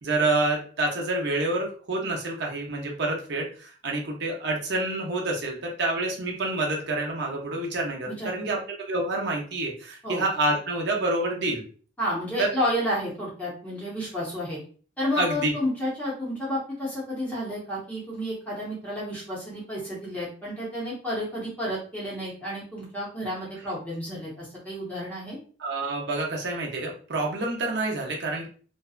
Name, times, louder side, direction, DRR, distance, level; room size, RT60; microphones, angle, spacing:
voice 1, 0.0-8.6 8.9-11.6 12.4-12.5 15.2-15.5 25.6-28.5, right 2 dB, 60° right, 0 dB, 0.7 m, -28 dB
voice 2, 8.1-8.6 10.0-10.2 12.0-14.6 15.0-25.4, equal, 10° left, -7 dB, 0.8 m, -31 dB
2.6 x 2.2 x 2.3 m, 0.42 s
head